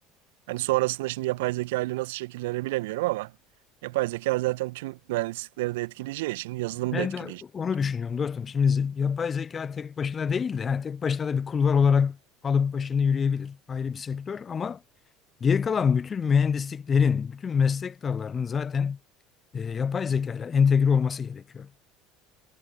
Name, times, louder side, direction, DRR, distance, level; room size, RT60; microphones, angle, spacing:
voice 1, 0.5-3.3 3.8-7.4, right 20 dB, 65° right, 1.7 m, -29 dB
voice 2, 6.9-12.2 12.4-14.8 15.4-19.0 19.5-21.8, left 6 dB, 30° left, 0.9 m, -25 dB
figure-of-eight pair, 65°, 0 cm